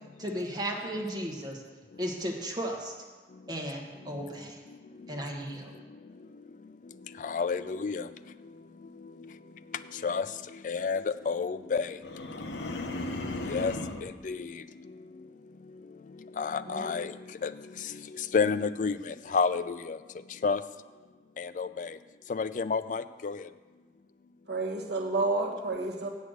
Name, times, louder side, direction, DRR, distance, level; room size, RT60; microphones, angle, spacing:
voice 1, 0.2-1.6 2.0-2.9 3.5-4.6 5.1-5.7, equal, 25° right, 0 dB, 1.3 m, -35 dB
voice 2, 7.2-8.1 10.0-10.3 10.6-12.0 13.5-13.7 14.0-14.5 16.4-17.1 17.4-17.5 18.3-20.0 20.4-20.6 21.4-22.0 22.3-23.4, left 5 dB, 45° left, 13 dB, 0.3 m, -29 dB
sound 1, 12.0-14.1, left 2 dB, 80° left, 0.7 m, -35 dB
voice 3, 24.5-26.1, right 2 dB, 70° right, 1 dB, 1.4 m, -30 dB
8.1 x 6.4 x 7.9 m, 1.4 s
head